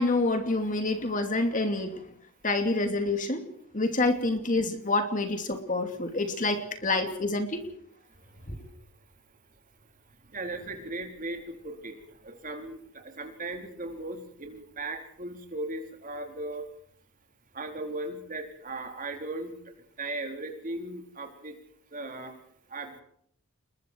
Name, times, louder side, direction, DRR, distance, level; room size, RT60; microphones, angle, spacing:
voice 1, 0.0-2.0 2.4-3.5 3.7-7.6 8.5-8.6, left 2 dB, 35° left, 6 dB, 2.7 m, -27 dB
voice 2, 8.2-8.8 10.2-16.7 17.5-19.5 20.0-21.6 21.9-22.3 22.7-23.0, right 2 dB, 40° right, 3 dB, 4.3 m, -37 dB
29.5 x 21.5 x 4.7 m, 0.70 s
head